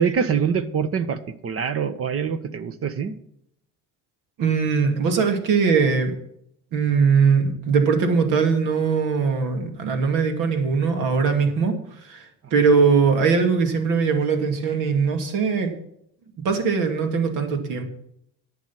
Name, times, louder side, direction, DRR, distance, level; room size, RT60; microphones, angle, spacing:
voice 1, 0.0-3.1, right 6 dB, 45° right, 11 dB, 1.3 m, -24 dB
voice 2, 4.4-6.1 6.7-11.7 12.0-12.2 12.5-15.7 16.4-17.8, right 5 dB, 70° right, 5 dB, 2.6 m, -20 dB
11.0 x 8.1 x 5.9 m, 0.73 s
supercardioid pair, 85°, 33 cm